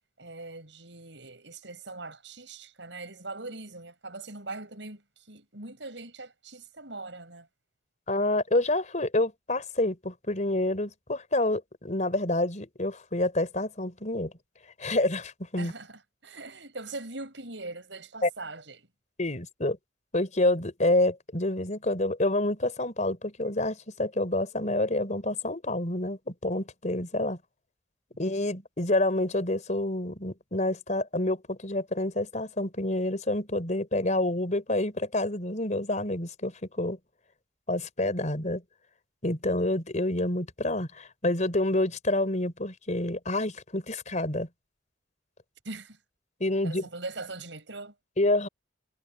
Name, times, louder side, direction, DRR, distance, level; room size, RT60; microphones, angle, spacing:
voice 1, 0.2-7.5 15.6-18.9 45.6-46.0 46.6-47.9, right 2 dB, 80° right, 8.0 m, -41 dB
voice 2, 8.1-14.3 14.8-15.7 18.2-18.3 19.2-19.8 20.1-27.4 28.2-37.0 37.7-38.6 39.2-44.5 46.4-46.9 48.2-48.5, left 2 dB, 40° left, 4.4 m, -28 dB
head